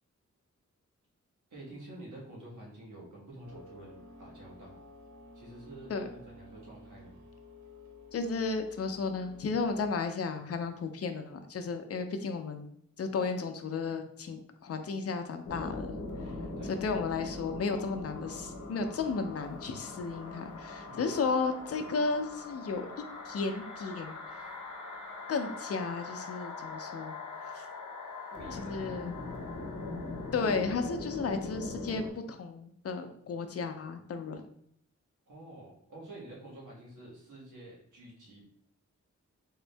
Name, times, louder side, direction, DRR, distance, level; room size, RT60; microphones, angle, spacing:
voice 1, 1.5-4.8 5.3-7.2 16.2-16.7 20.9-21.0 28.3-29.0 35.3-38.4, right 1 dB, 90° right, -5 dB, 1.4 m, -49 dB
sound 1, 3.4-9.9, left 1 dB, 65° right, 0.8 m, -53 dB
voice 2, 8.1-12.7 13.0-15.9 16.6-24.5 25.3-27.2 27.5-27.7 28.5-29.1 30.3-34.4, left 4 dB, 55° left, 7 dB, 0.5 m, -34 dB
sound 2, 15.5-32.1, left 3 dB, 90° left, 0.9 m, -41 dB
3.7 x 2.6 x 3.3 m, 0.70 s
wide cardioid pair, 85°, 29 cm